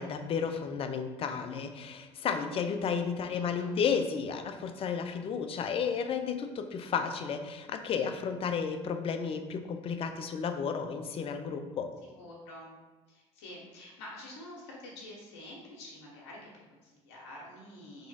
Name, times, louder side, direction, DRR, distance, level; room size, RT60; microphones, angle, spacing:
voice 1, 0.0-11.9, left 6 dB, 40° left, 7 dB, 0.5 m, -32 dB
voice 2, 3.3-3.7 12.2-12.7 13.1-18.1, left 1 dB, 80° left, -3 dB, 1.0 m, -48 dB
3.7 x 3.0 x 4.1 m, 1.3 s
supercardioid pair, 80°, 15 cm